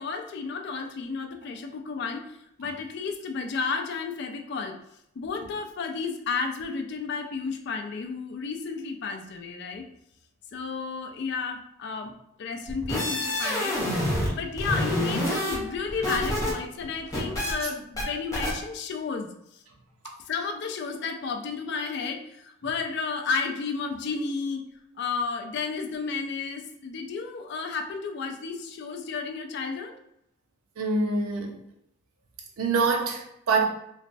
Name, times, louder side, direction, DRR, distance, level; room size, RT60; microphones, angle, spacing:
voice 1, 0.0-4.8 5.2-9.9 10.5-12.1 12.4-19.3 20.3-24.6 25.0-30.0, left 5 dB, 50° left, 0.3 m, -32 dB
sound 1, 12.7-14.3 14.6-16.5 16.8-17.5 18.0-18.1 18.3-18.5, left 1 dB, 15° left, 0.6 m, -27 dB
voice 2, 30.8-31.5 32.6-33.7, right 4 dB, 90° right, 0.6 m, -25 dB
3.0 x 2.2 x 2.5 m
head